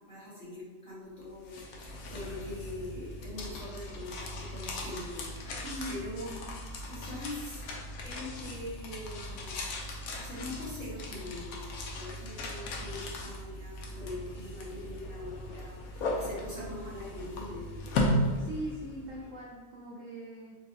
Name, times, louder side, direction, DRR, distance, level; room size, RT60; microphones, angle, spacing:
voice 1, 0.1-6.6 6.8-7.6 8.0-9.5 10.1-17.9, left 1 dB, 35° left, -10 dB, 1.3 m, -43 dB
sound 1, 1.2-19.2, left 1 dB, 75° left, 0.8 m, -37 dB
voice 2, 5.6-6.0 18.4-20.6, right 1 dB, 75° right, -4 dB, 0.7 m, -40 dB
4.3 x 2.1 x 2.7 m, 1.3 s
omnidirectional pair, 1.9 m